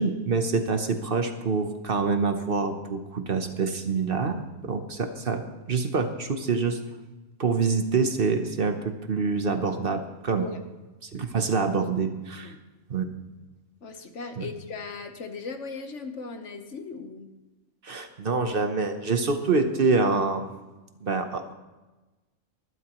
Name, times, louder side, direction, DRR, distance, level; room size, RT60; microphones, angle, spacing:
voice 1, 0.0-5.4 5.7-6.8 7.4-10.4 11.0-12.5 12.9-13.1 14.4-14.5 17.8-20.5 21.0-21.5, right 4 dB, 50° right, 7 dB, 1.0 m, -26 dB
voice 2, 13.8-17.3, left 4 dB, 65° left, 7 dB, 1.4 m, -37 dB
20.5 x 12.5 x 3.0 m, 1.1 s
omnidirectional pair, 1.3 m